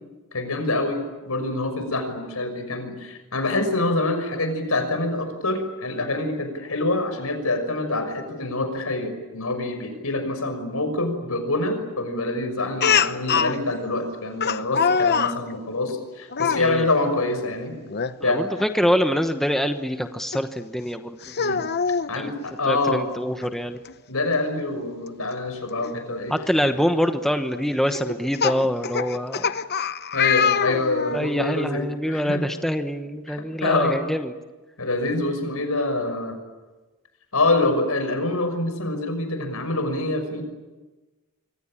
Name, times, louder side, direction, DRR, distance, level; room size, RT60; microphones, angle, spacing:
voice 1, 0.3-17.7 18.2-18.4 21.4-21.6 22.1-23.0 24.1-26.3 30.1-32.4 33.3-34.0 34.8-36.4 37.3-40.4, left 2 dB, 70° left, 7 dB, 6.1 m, -26 dB
Speech, 12.8-13.6 14.4-15.4 16.3-16.6 17.9-18.1 18.6-18.7 20.3-20.4 21.2-22.1 23.4-23.5 23.9-24.0 25.8-25.9 26.6-26.8 27.9-31.2, left 6 dB, 45° left, 0.9 m, -23 dB
voice 2, 16.6-16.9 18.2-21.3 22.2-22.3 22.7-23.8 26.3-29.5 30.7-30.8 31.1-34.3, equal, ahead, 6 dB, 1.1 m, -25 dB
27.0 x 24.5 x 8.9 m, 1.2 s
head